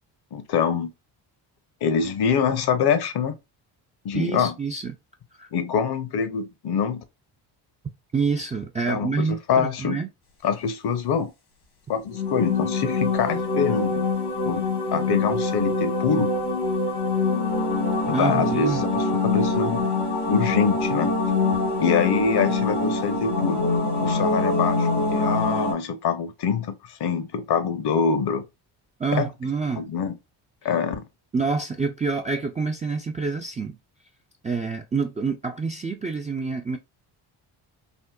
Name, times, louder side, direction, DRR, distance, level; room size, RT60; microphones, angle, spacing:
voice 1, 0.3-0.9 1.8-3.3 4.0-4.5 5.5-7.0 8.9-10.0 10.4-11.3 11.9-14.0 14.5-14.6 14.9-16.3 18.1-19.8 20.3-21.1 21.8-23.6 24.0-28.5 29.1-29.3 29.7-30.2 30.6-31.0, left 6 dB, 50° left, 0.8 m, -25 dB
voice 2, 4.1-4.9 5.4-5.5 8.1-10.1 18.1-18.8 29.0-29.9 31.3-33.8 34.4-36.8, right 4 dB, 15° right, 0.3 m, -27 dB
sound 1, 12.1-25.7, left 3 dB, 70° left, 1.4 m, -24 dB
3.7 x 2.1 x 2.2 m
supercardioid pair, 60°, 49 cm